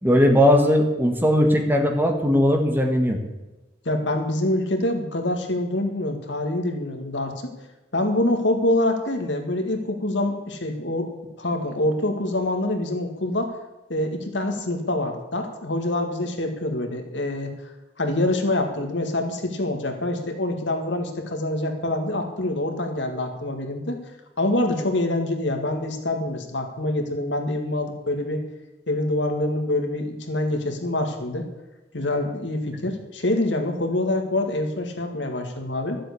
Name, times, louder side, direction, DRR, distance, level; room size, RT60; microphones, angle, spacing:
voice 1, 0.0-3.2, equal, 10° right, 4 dB, 1.5 m, -18 dB
voice 2, 3.9-7.5 7.9-11.1 11.4-13.5 13.9-17.5 18.0-24.0 24.4-28.4 28.9-31.5 31.9-36.0, left 1 dB, 70° left, 5 dB, 2.0 m, -25 dB
13.0 x 7.6 x 8.4 m, 1.1 s
head